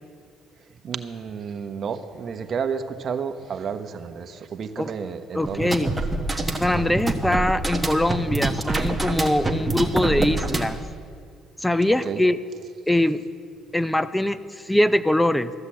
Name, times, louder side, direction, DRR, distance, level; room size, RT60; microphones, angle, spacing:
voice 1, 0.8-5.9 11.9-12.2, right 6 dB, 50° right, 8 dB, 0.9 m, -31 dB
voice 2, 5.3-5.9 6.6-10.8 11.6-12.4 12.9-13.2 13.7-15.5, left 1 dB, 5° left, 14 dB, 0.5 m, -22 dB
sound 1, 5.4-10.8, right 2 dB, 10° right, 1.3 m, -26 dB
14.0 x 8.2 x 7.4 m, 2.2 s
cardioid pair, 90°, 0 cm